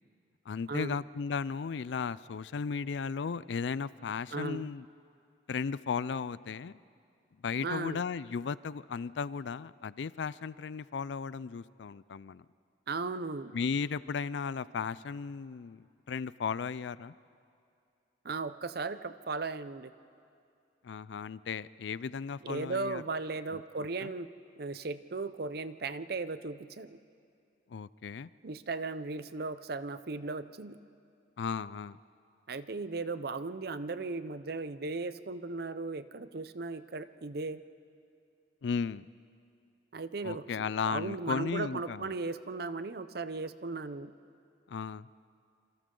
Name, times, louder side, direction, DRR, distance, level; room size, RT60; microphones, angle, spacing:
voice 1, 0.5-4.9 5.5-6.8 7.4-12.4 13.5-17.1 20.8-23.0 23.5-23.6 24.0-24.1 27.7-28.3 31.4-32.0 38.6-39.1 40.2-42.1 44.7-45.1, left 5 dB, 75° left, 18 dB, 0.4 m, -35 dB
voice 2, 4.3-4.7 7.6-8.0 12.9-13.5 18.2-19.9 22.4-24.3 24.6-27.0 28.4-30.8 32.5-37.6 39.9-44.1, right 3 dB, 55° right, 13 dB, 0.7 m, -37 dB
27.0 x 26.5 x 3.8 m, 2.4 s
head